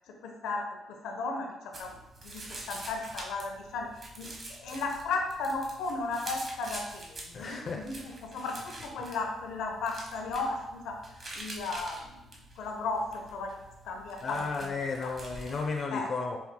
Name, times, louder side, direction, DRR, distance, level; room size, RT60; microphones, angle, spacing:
voice 1, 0.2-0.6 1.0-1.9 2.2-2.4 2.7-3.9 4.2-4.3 4.6-7.1 7.3-10.9 11.3-12.2 12.6-13.5 13.9-14.7 15.9-16.1, left 3 dB, 85° left, 2 dB, 0.7 m, -34 dB
sound 1, 1.7-15.8, right 1 dB, 35° right, 1.2 m, -46 dB
voice 2, 7.3-7.8 14.2-16.4, left 4 dB, 50° left, 2 dB, 0.5 m, -33 dB
5.4 x 4.4 x 2.2 m, 0.93 s
cardioid pair, 90°, 0 cm